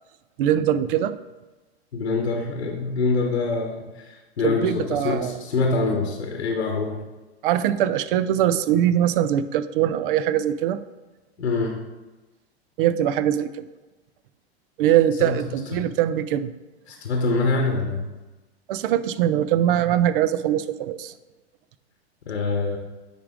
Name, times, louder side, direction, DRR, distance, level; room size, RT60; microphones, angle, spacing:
voice 1, 0.4-1.2 4.4-5.4 7.4-10.8 12.8-13.7 14.8-16.5 18.7-21.1, right 11 dB, 55° right, 14 dB, 0.5 m, -22 dB
voice 2, 1.9-7.0 11.4-11.8 15.2-15.4 15.7-15.8 16.9-18.1 22.3-22.8, left 3 dB, 90° left, 2 dB, 1.0 m, -25 dB
9.6 x 3.7 x 3.7 m, 1.2 s
hypercardioid pair, 105°, 33 cm